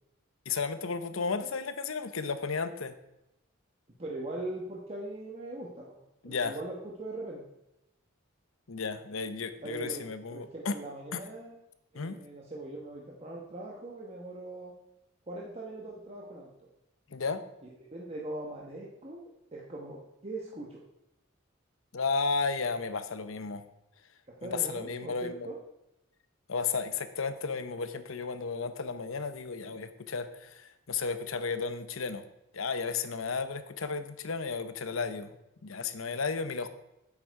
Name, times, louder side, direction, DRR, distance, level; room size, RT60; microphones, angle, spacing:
voice 1, 0.5-2.9 6.2-6.6 8.7-10.7 11.1-11.2 11.9-12.2 17.1-17.4 21.9-23.6 24.4-25.5 26.5-32.2 32.5-35.3 35.6-36.7, left 4 dB, 80° left, 11 dB, 0.8 m, -33 dB
voice 2, 4.0-7.4 9.6-10.1 10.3-11.6 11.9-14.7 15.3-16.7 17.6-19.2 19.5-20.8 24.3-25.6, right 2 dB, 30° right, -3 dB, 1.2 m, -41 dB
9.0 x 8.6 x 4.7 m, 0.89 s
head